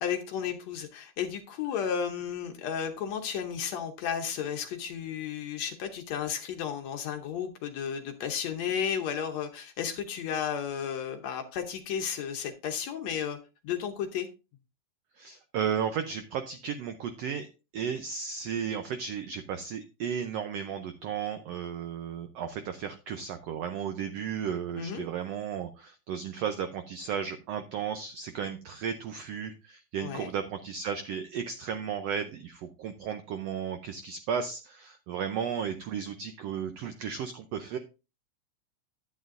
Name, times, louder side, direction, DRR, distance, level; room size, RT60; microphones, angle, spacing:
voice 1, 0.0-13.4 13.6-14.3 24.8-25.1 30.0-30.3, left 8 dB, 70° left, 5 dB, 1.8 m, -33 dB
voice 2, 15.2-17.5 17.7-37.8, right 7 dB, 85° right, 8 dB, 1.4 m, -34 dB
10.0 x 9.3 x 2.5 m, 0.29 s
omnidirectional pair, 3.7 m